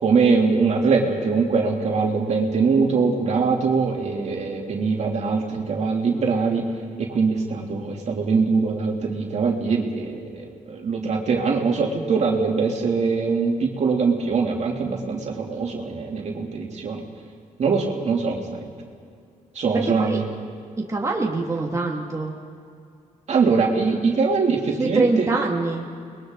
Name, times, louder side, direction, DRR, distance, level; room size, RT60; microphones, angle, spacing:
voice 1, 0.0-6.7 7.0-17.0 17.6-18.7 19.5-20.2 23.3-25.3, right 4 dB, 60° right, 0 dB, 3.0 m, -22 dB
voice 2, 19.7-20.2 20.9-22.3 24.8-25.8, right 3 dB, 20° right, -2 dB, 2.2 m, -24 dB
29.5 x 21.5 x 4.0 m, 2.3 s
cardioid pair, 100°, 13 cm